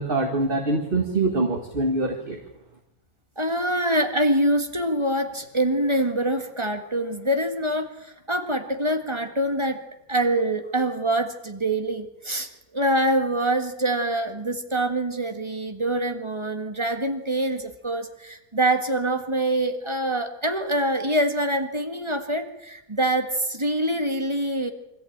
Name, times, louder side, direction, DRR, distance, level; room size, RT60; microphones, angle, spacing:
voice 1, 0.0-2.4, right 2 dB, 35° right, 2 dB, 2.1 m, -24 dB
voice 2, 3.4-9.8 10.1-12.5 12.7-24.7, right 1 dB, 20° right, 5 dB, 1.7 m, -25 dB
24.5 x 14.5 x 8.7 m, 0.90 s
omnidirectional pair, 1.6 m